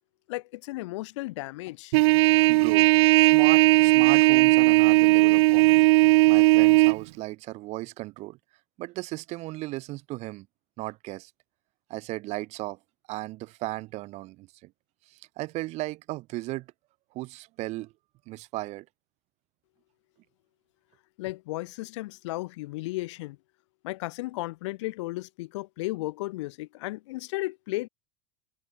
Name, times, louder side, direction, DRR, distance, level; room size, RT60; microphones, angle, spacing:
voice 1, 0.3-2.0 21.2-23.4 23.8-27.9, left 20 dB, 70° left, 7.0 m, -34 dB
Trumpet, 1.9-7.0, right 24 dB, 65° right, 1.1 m, -18 dB
voice 2, 2.3-2.9 3.3-5.9 6.3-8.4 8.8-10.5 10.8-11.3 11.9-12.8 13.1-14.7 15.1-16.7 17.1-17.9 18.3-18.9, right 19 dB, 45° right, 6.5 m, -36 dB
supercardioid pair, 140°, 16 cm